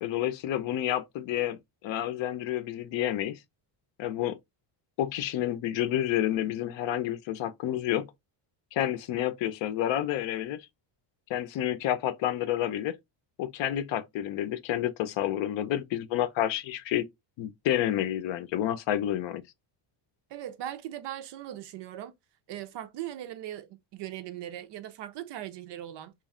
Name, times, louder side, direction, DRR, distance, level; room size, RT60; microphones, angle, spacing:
voice 1, 0.0-3.4 4.0-4.4 5.0-8.1 8.7-10.6 11.3-13.0 13.4-17.1 17.4-19.4, left 12 dB, 65° left, 0.7 m, -29 dB
voice 2, 20.3-22.1 22.5-26.1, right 12 dB, 60° right, 0.6 m, -39 dB
3.2 x 2.4 x 3.6 m
cardioid pair, 160°, 49 cm